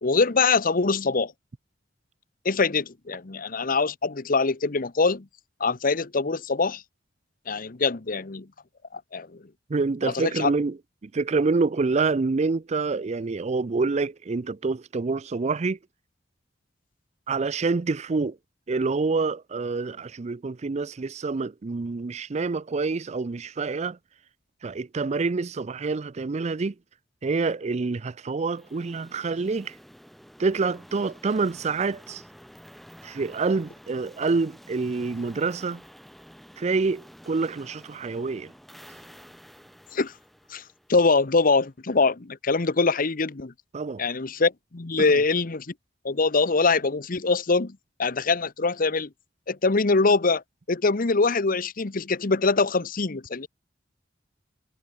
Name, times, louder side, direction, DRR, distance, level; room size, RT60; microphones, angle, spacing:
voice 1, 0.0-1.3 2.4-5.3 5.6-6.8 7.5-8.5 8.9-9.4 10.0-10.5 39.9-40.1 40.5-40.6 40.9-43.5 44.0-45.7 46.0-49.1 49.5-53.5, left 4 dB, 50° left, 1.0 m, -23 dB
voice 2, 9.7-10.8 11.0-15.8 17.3-18.4 18.7-24.0 24.6-26.7 27.2-29.7 30.4-32.2 33.0-35.8 36.6-38.5 43.7-44.0, right 4 dB, 35° right, 0.5 m, -27 dB
sound 1, 28.5-41.4, equal, ahead, 4.9 m, -50 dB
head